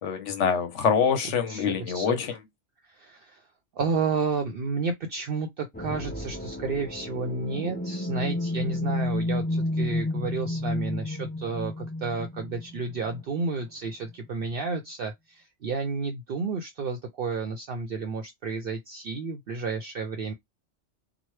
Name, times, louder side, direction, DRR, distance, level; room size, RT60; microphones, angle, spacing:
voice 1, 0.0-2.4, left 7 dB, 75° left, 1.1 m, -25 dB
voice 2, 1.5-2.2 2.9-3.4 3.7-20.3, right 4 dB, 60° right, 0.7 m, -31 dB
sound 1, 5.7-13.5, left 1 dB, 15° left, 0.4 m, -31 dB
3.0 x 2.1 x 3.1 m
omnidirectional pair, 1.2 m